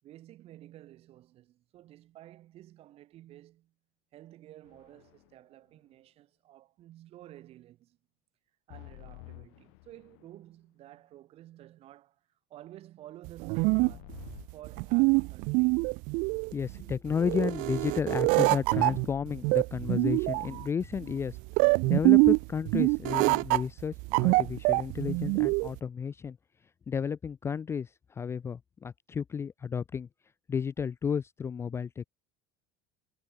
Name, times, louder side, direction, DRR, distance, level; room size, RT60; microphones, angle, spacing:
voice 1, 0.0-3.7 4.1-8.0 8.7-12.2 12.5-15.9, right 14 dB, 40° right, 7.3 m, -52 dB
sound 1, 4.6-5.4 8.7-10.4 13.7-15.4 18.7-19.6, left 40 dB or more, 65° left, 1.1 m, -50 dB
sound 2, 13.3-25.8, right 29 dB, 55° right, 0.5 m, -25 dB
voice 2, 16.5-21.4 21.9-26.4 26.9-30.1 30.5-32.1, left 6 dB, 15° left, 0.5 m, -32 dB
cardioid pair, 165°, 16 cm